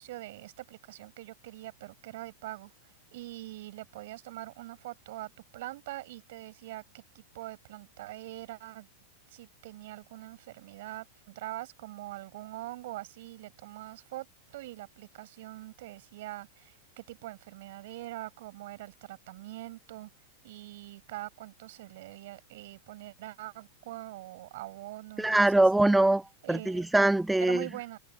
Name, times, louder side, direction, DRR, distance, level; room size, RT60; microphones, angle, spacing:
voice 1, 0.0-2.7 3.1-8.9 9.3-20.1 20.4-25.6 26.4-26.9 27.4-28.0, right 17 dB, 65° right, 4.9 m, -43 dB
voice 2, 25.2-26.2 26.5-27.6, right 2 dB, 5° right, 0.4 m, -23 dB
hypercardioid pair, 130°, 0 cm